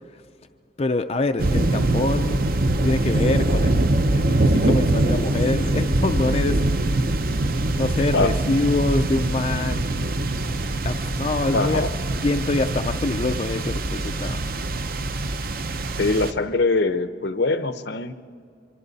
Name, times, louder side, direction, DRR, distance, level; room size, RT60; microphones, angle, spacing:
voice 1, 0.8-2.4 2.8-7.0 7.8-9.9 10.8-11.8 12.2-14.4, left 2 dB, 35° left, 6 dB, 0.4 m, -25 dB
sound 1, 1.4-16.3, right 2 dB, 50° right, 0.7 m, -23 dB
voice 2, 11.5-11.9 16.0-18.1, left 3 dB, 70° left, 11 dB, 0.8 m, -22 dB
25.0 x 25.0 x 4.1 m, 2.1 s
head